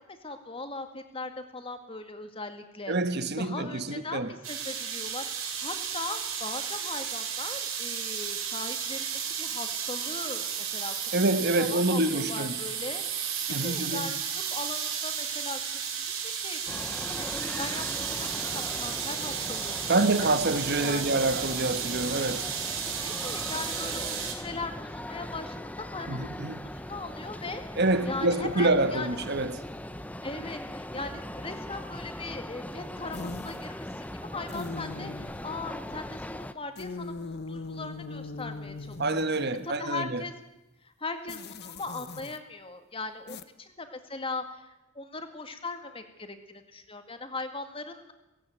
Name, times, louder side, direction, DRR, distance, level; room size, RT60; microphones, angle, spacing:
voice 1, 0.2-2.9 3.4-10.4 10.7-10.9 11.6-20.3 20.8-21.1 23.0-27.8 28.1-29.1 30.2-39.0 39.6-40.3 40.8-48.1, left 3 dB, 25° left, 2.1 m, -39 dB
voice 2, 2.9-4.3 11.1-12.6 13.5-14.1 19.9-22.5 26.1-26.6 27.8-29.6 39.0-40.2, right 2 dB, 50° right, 1.3 m, -27 dB
sound 1, 4.4-24.3, right 7 dB, 80° right, 5.2 m, -33 dB
sound 2, 16.7-36.5, left 1 dB, 5° left, 0.8 m, -40 dB
sound 3, 33.1-33.7 34.5-35.4 36.8-39.7 41.3-42.4 43.3-43.4, left 3 dB, 50° left, 1.1 m, -40 dB
17.5 x 17.0 x 9.3 m
head